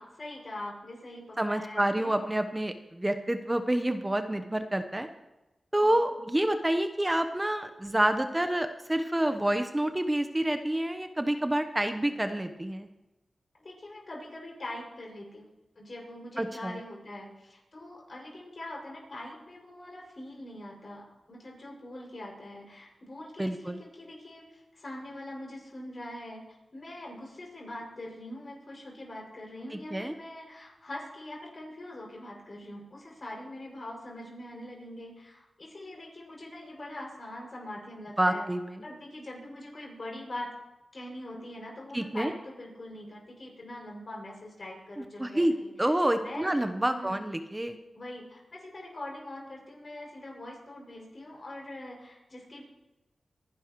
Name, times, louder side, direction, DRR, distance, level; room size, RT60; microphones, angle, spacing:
voice 1, 0.0-2.1 5.8-6.2 13.6-15.5 15.7-38.4 38.8-40.5 40.9-45.9 46.2-46.5 46.9-47.2 47.9-52.7, left 1 dB, 55° left, -1 dB, 6.4 m, -43 dB
voice 2, 1.4-5.1 5.7-12.9 16.4-16.8 23.4-23.8 29.9-30.1 38.2-38.8 41.9-42.3 45.2-45.5 45.8-47.8, right 1 dB, 20° right, 7 dB, 1.0 m, -28 dB
25.0 x 11.0 x 3.1 m, 1.0 s
cardioid pair, 45°, 0 cm